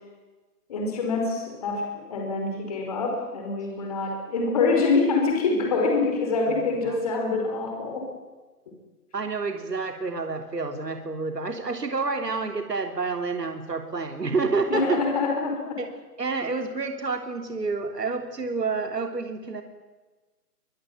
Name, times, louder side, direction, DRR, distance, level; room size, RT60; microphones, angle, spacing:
voice 1, 0.7-8.1 14.7-15.8, left 3 dB, 25° left, 1 dB, 4.7 m, -25 dB
voice 2, 6.5-7.0 9.1-15.0 15.8-15.9 16.2-19.6, right 4 dB, 85° right, 5 dB, 3.4 m, -29 dB
23.0 x 22.0 x 9.3 m, 1.3 s
hypercardioid pair, 175°, 47 cm